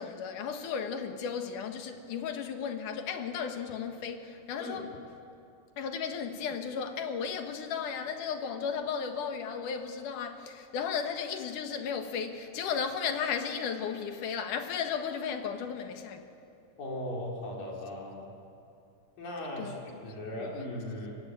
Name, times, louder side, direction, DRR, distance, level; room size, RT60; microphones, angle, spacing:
voice 1, 0.0-4.9 5.8-16.3 19.6-20.5, left 6 dB, 70° left, 2.9 m, -35 dB
voice 2, 16.8-18.3 19.2-19.7 20.0-21.2, left 1 dB, 90° left, 6.0 m, -38 dB
24.0 x 23.5 x 9.3 m
omnidirectional pair, 3.8 m